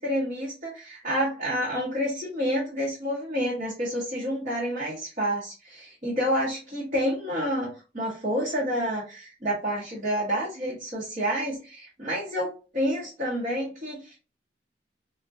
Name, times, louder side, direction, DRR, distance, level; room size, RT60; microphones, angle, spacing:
voice 1, 0.0-12.5 12.7-14.2, equal, 40° right, -5 dB, 0.9 m, -29 dB
3.4 x 2.1 x 2.5 m, 0.32 s
head